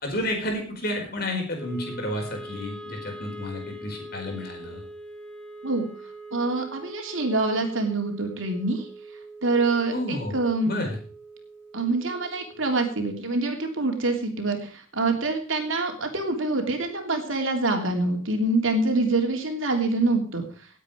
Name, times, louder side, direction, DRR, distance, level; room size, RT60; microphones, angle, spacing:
voice 1, 0.0-4.8 9.9-10.4 10.6-11.0, left 1 dB, 50° left, 2 dB, 4.7 m, -31 dB
Wind instrument woodwind instrument, 1.6-13.8, right 1 dB, 5° left, 1.9 m, -43 dB
voice 2, 6.3-8.8 9.4-10.7 11.7-20.4, right 2 dB, 75° right, 3 dB, 3.1 m, -25 dB
18.5 x 8.4 x 5.1 m, 0.42 s
head